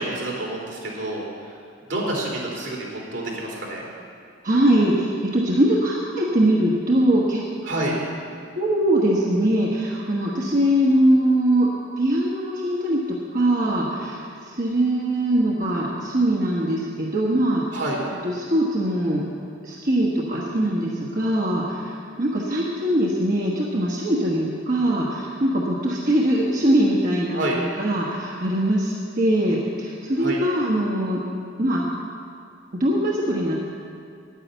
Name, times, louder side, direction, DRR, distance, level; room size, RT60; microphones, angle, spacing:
voice 1, 0.0-1.6 1.8-3.8 7.6-7.9 17.7-18.0 27.3-27.6 30.1-30.4, right 1 dB, 75° right, -3 dB, 3.3 m, -28 dB
voice 2, 4.4-7.4 8.6-11.7 12.0-17.6 18.2-19.2 19.6-31.2 31.6-31.8 32.7-33.6, right 1 dB, 45° right, -4 dB, 1.2 m, -22 dB
10.0 x 9.8 x 8.0 m, 2.4 s
head